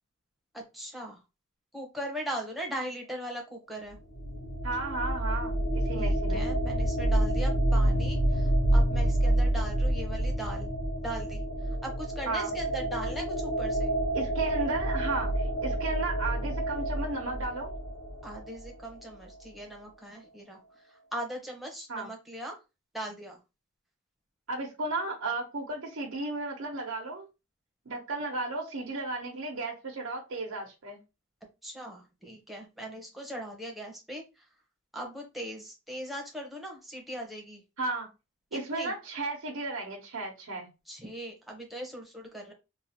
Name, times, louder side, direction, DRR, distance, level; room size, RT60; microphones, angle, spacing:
voice 1, 0.5-1.2 1.7-4.0 5.9-10.7 11.0-13.9 18.2-20.6 20.9-22.6 22.9-23.4 31.6-34.5 34.9-37.6 38.5-38.9 40.9-42.5, right 1 dB, ahead, 1.0 m, -39 dB
sound 1, 3.9-18.7, right 1 dB, 90° left, 0.7 m, -28 dB
voice 2, 4.6-6.4 12.3-12.5 14.1-17.7 21.9-22.1 24.5-27.3 27.9-31.0 37.8-38.1 38.5-40.7, right 2 dB, 90° right, 0.8 m, -34 dB
3.8 x 2.4 x 2.8 m
head